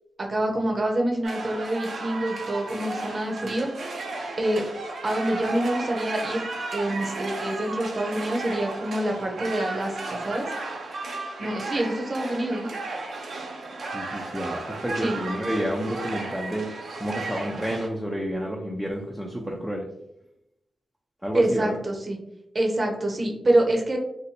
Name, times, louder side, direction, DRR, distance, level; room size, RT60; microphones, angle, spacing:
voice 1, 0.2-3.7 4.4-4.6 5.0-6.5 6.7-10.4 11.4-12.7 15.0-15.1 21.3-22.2 22.5-24.0, right 1 dB, 40° right, 0 dB, 0.7 m, -26 dB
sound 1, 1.2-17.9, right 3 dB, 75° right, 0.5 m, -34 dB
voice 2, 13.8-16.6 16.9-19.9 21.2-21.8, equal, 5° right, -1 dB, 0.5 m, -30 dB
2.7 x 2.2 x 4.1 m, 0.84 s
cardioid pair, 80°, 0 cm